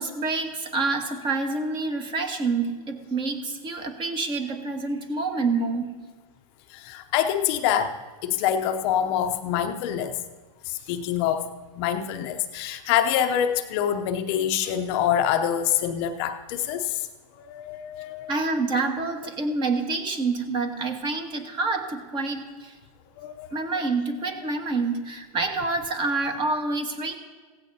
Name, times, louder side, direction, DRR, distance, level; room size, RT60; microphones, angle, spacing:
voice 1, 0.0-5.9 18.3-22.7 23.5-27.2, right 3 dB, 25° right, 5 dB, 1.5 m, -27 dB
voice 2, 6.7-7.9 8.2-10.1 10.7-11.5 11.8-17.0 17.5-18.3 23.2-23.5, left 9 dB, 45° left, 7 dB, 0.7 m, -25 dB
16.5 x 15.5 x 2.8 m, 1.3 s
hypercardioid pair, 135°, 19 cm